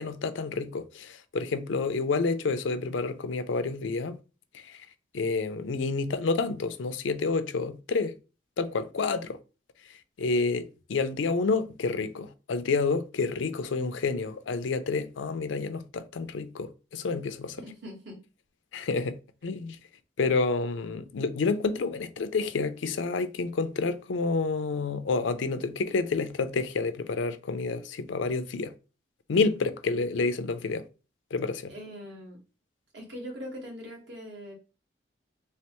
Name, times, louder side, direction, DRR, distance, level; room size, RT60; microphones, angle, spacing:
voice 1, 0.0-4.2 4.5-4.9 5.1-8.1 8.6-9.4 9.9-17.6 18.7-19.8 20.2-28.7 29.3-30.8 31.3-31.7, left 4 dB, 80° left, 0.5 m, -29 dB
voice 2, 17.6-18.2 31.7-32.4 32.9-34.5, equal, 70° right, 1.5 m, -41 dB
3.4 x 3.2 x 3.0 m
head